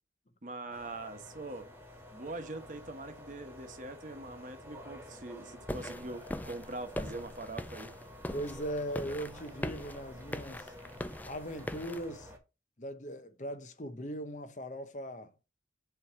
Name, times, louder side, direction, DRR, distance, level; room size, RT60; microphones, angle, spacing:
voice 1, 0.4-1.7 2.1-7.9, right 2 dB, 45° right, 1.2 m, -43 dB
sound 1, 0.7-12.4, equal, 10° right, 1.5 m, -51 dB
sound 2, 5.7-12.0, left 1 dB, 10° left, 0.3 m, -41 dB
voice 2, 8.3-10.7 11.2-12.3 12.8-15.3, equal, 45° left, 0.9 m, -39 dB
6.8 x 3.3 x 6.0 m
head